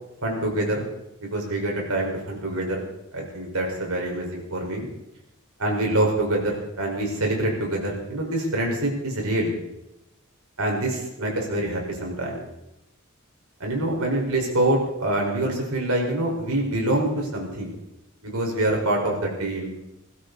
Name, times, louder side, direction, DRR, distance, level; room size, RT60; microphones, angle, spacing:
voice 1, 0.2-0.9 1.2-2.8 3.1-4.9 5.6-9.6 10.6-12.4 13.6-17.7 18.2-19.7, right 1 dB, 75° right, 0 dB, 5.3 m, -25 dB
20.5 x 16.5 x 4.2 m, 0.91 s
head